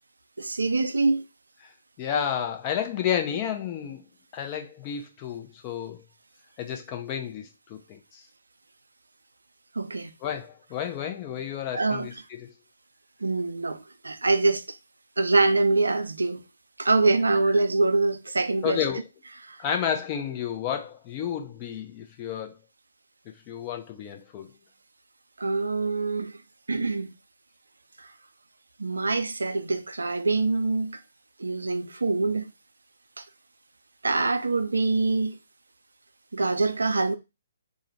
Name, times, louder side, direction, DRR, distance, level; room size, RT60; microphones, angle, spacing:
voice 1, 0.4-1.2 9.8-10.1 11.7-12.1 13.2-14.6 15.2-16.4 16.8-18.8 19.5-19.6 25.4-26.3 26.7-27.1 28.8-31.0 31.4-32.5 33.2-33.3 34.0-35.4 36.3-37.2, right 3 dB, 80° right, 0.4 m, -24 dB
voice 2, 2.0-4.1 4.3-6.0 6.6-8.2 10.2-12.5 18.6-19.0 19.6-22.5 23.5-24.5, left 9 dB, 30° left, 0.6 m, -31 dB
2.5 x 2.1 x 3.9 m
figure-of-eight pair, 135°, 0 cm